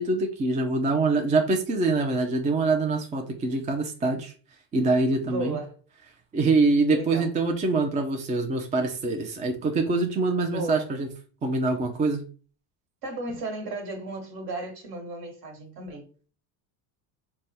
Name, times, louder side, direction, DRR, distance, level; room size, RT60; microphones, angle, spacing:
voice 1, 0.0-4.3 4.7-5.6 6.3-11.1 11.4-12.2, right 3 dB, 20° right, 0.3 m, -24 dB
voice 2, 5.2-5.8 6.9-7.3 10.5-10.9 13.0-16.1, right 2 dB, 50° right, 1.3 m, -34 dB
3.3 x 2.2 x 4.1 m
supercardioid pair, 115°, 47 cm